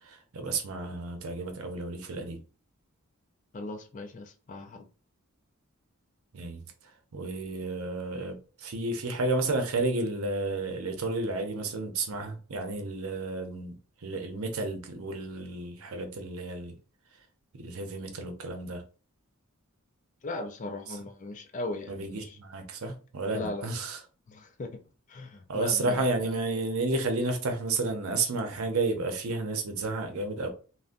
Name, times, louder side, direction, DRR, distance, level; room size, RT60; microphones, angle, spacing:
voice 1, 0.0-2.4 6.3-6.6 7.1-13.8 14.0-16.7 17.5-18.8 21.9-24.0 25.5-30.5, right 3 dB, 70° right, 0.6 m, -31 dB
voice 2, 3.5-4.8 20.2-22.4 23.3-23.7 24.3-24.8 25.1-26.0, left 2 dB, 35° left, 0.4 m, -38 dB
3.6 x 2.1 x 2.5 m
head